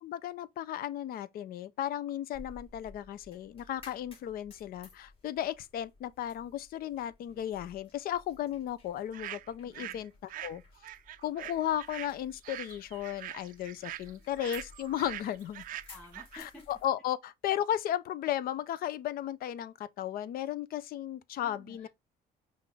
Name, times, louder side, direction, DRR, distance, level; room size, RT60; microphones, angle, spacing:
voice 1, 0.0-10.6 11.2-15.6 16.7-21.9, left 11 dB, 60° left, 0.5 m, -35 dB
sound 1, 2.3-16.9, left 3 dB, 35° left, 2.7 m, -57 dB
sound 2, 9.1-10.0 10.3-16.4, right 13 dB, 55° right, 0.4 m, -43 dB
voice 2, 9.6-10.1 15.9-16.6 21.4-21.9, left 1 dB, 5° left, 2.0 m, -52 dB
5.7 x 2.5 x 3.2 m
cardioid pair, 110°, 17 cm